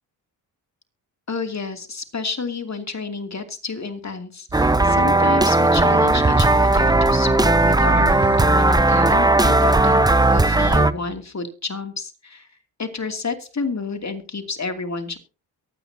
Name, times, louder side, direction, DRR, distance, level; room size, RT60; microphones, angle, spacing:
voice 1, 1.3-12.5 12.8-15.2, left 4 dB, 35° left, 6 dB, 2.8 m, -30 dB
sound 1, 4.5-10.9, right 2 dB, 10° right, 0.7 m, -16 dB
sound 2, 6.1-7.4 8.1-9.4 10.1-11.2, right 4 dB, 35° right, 1.2 m, -32 dB
23.0 x 9.1 x 2.8 m, 0.32 s
supercardioid pair, 50°, 46 cm